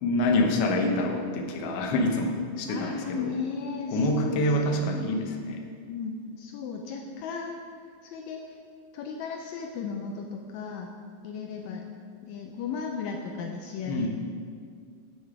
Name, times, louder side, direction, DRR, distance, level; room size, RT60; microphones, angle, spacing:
voice 1, 0.0-3.3 3.9-5.6 13.9-14.1, left 1 dB, 75° left, 2 dB, 1.4 m, -26 dB
voice 2, 2.7-5.3 5.9-7.6 8.0-8.6 8.9-10.9 11.2-11.9 12.2-14.1, left 5 dB, 90° left, 3 dB, 1.5 m, -35 dB
9.1 x 6.5 x 4.7 m, 2.1 s
omnidirectional pair, 3.8 m